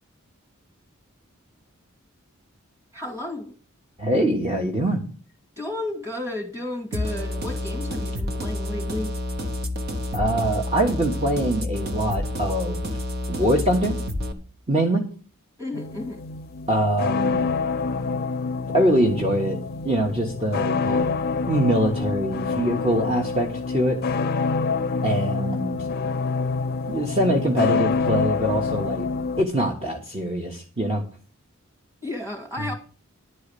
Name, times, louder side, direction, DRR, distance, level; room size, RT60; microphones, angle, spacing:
voice 1, 2.9-3.5 5.6-9.1 15.6-16.2 32.0-32.7, left 1 dB, 15° right, 2.4 m, -32 dB
voice 2, 4.0-5.0 10.1-12.9 13.3-13.9 14.7-15.1 16.7-17.4 18.7-19.6 19.8-21.1 21.5-24.0 25.0-25.8 26.9-29.1 29.4-31.0, right 1 dB, 30° right, 1.3 m, -23 dB
sound 1, 6.9-14.3, left 1 dB, 50° right, 1.2 m, -29 dB
sound 2, 15.7-29.4, left 4 dB, 45° left, 0.5 m, -26 dB
11.0 x 4.8 x 8.3 m
head